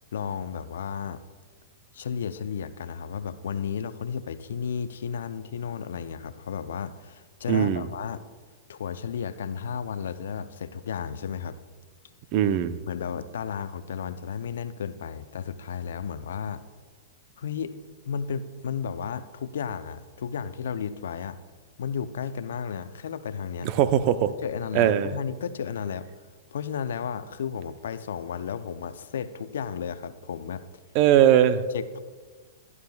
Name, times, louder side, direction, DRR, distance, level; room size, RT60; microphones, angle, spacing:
voice 1, 0.1-1.2 1.9-8.2 8.7-11.6 12.9-16.6 17.4-17.7 18.0-21.4 21.8-23.7 24.4-26.1 26.5-30.7 31.7-32.0, left 7 dB, 70° left, 12 dB, 0.6 m, -33 dB
voice 2, 7.5-7.9 12.3-12.8 23.6-24.3 24.7-25.1 30.9-31.6, right 10 dB, 45° right, 12 dB, 0.7 m, -20 dB
21.5 x 11.0 x 2.4 m, 1.4 s
hypercardioid pair, 110°, 0 cm